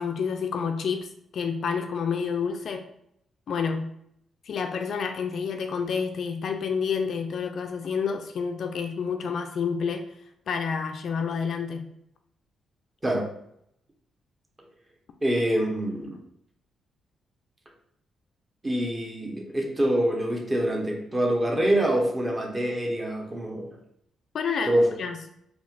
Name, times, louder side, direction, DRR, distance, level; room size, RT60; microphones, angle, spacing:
voice 1, 0.0-2.8 3.5-3.9 4.4-10.0 10.5-11.9 24.3-25.1, left 6 dB, 60° left, 0.3 m, -29 dB
voice 2, 13.0-13.3 15.2-16.2 18.6-23.8 24.6-25.0, right 1 dB, 25° right, 1.0 m, -25 dB
4.2 x 2.9 x 2.4 m
hypercardioid pair, 40°, 0 cm